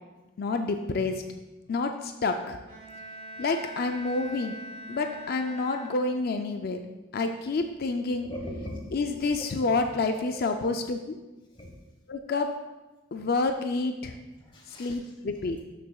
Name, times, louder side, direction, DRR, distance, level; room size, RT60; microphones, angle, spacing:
voice 1, 0.4-1.2 1.7-2.6 3.4-4.6 4.9-6.8 7.1-8.3 8.9-11.2 12.1-12.5 13.1-14.1 14.8-15.6, left 3 dB, 50° left, 6 dB, 0.4 m, -28 dB
Bowed string instrument, 2.7-6.4, equal, 35° right, 2.4 m, -43 dB
voice 2, 8.1-9.7 10.1-10.6 11.5-11.7 14.4-15.1, left 1 dB, 25° left, 0 dB, 1.3 m, -41 dB
12.0 x 6.6 x 2.3 m, 1.1 s
head